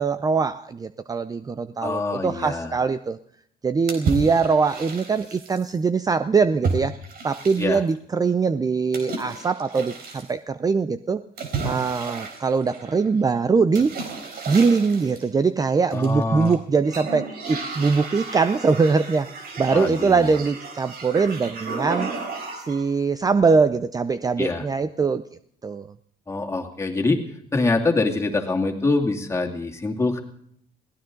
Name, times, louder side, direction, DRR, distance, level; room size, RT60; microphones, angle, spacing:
voice 1, 0.0-3.2 3.6-7.0 7.2-11.2 11.6-14.0 14.5-22.1 22.6-25.2 25.6-25.9, right 5 dB, 20° right, 12 dB, 0.5 m, -22 dB
voice 2, 1.8-2.8 7.6-7.8 15.9-16.5 19.7-20.4 24.4-24.7 26.3-27.2 27.5-30.2, left 3 dB, 15° left, 2 dB, 2.6 m, -24 dB
sound 1, 3.9-5.7 6.6-7.9 8.9-10.3 11.4-13.1 13.7-15.3 15.9-16.5 16.9-22.9, right 4 dB, 65° right, 4.0 m, -32 dB
22.0 x 17.0 x 3.9 m, 0.67 s
cardioid pair, 110°, 17 cm